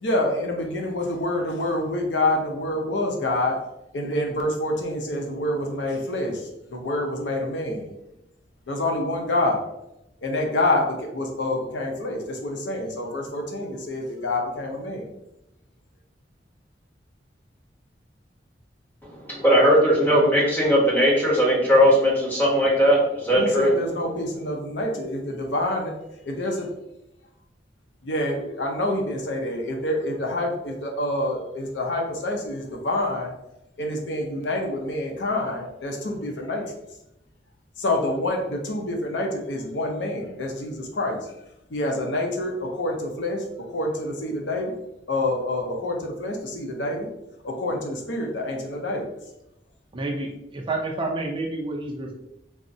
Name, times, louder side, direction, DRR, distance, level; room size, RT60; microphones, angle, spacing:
voice 1, 0.0-3.6 3.9-7.9 8.7-9.7 10.2-15.2 23.4-25.9 26.4-26.6 28.1-33.3 33.8-36.6 37.8-41.3 41.7-44.8 45.1-47.1 47.4-49.1, left 1 dB, 85° left, 1 dB, 0.6 m, -27 dB
voice 2, 19.3-23.7, equal, 10° left, -4 dB, 0.8 m, -18 dB
voice 3, 49.9-52.1, right 2 dB, 30° right, 0 dB, 0.4 m, -29 dB
3.4 x 2.0 x 2.6 m, 0.86 s
head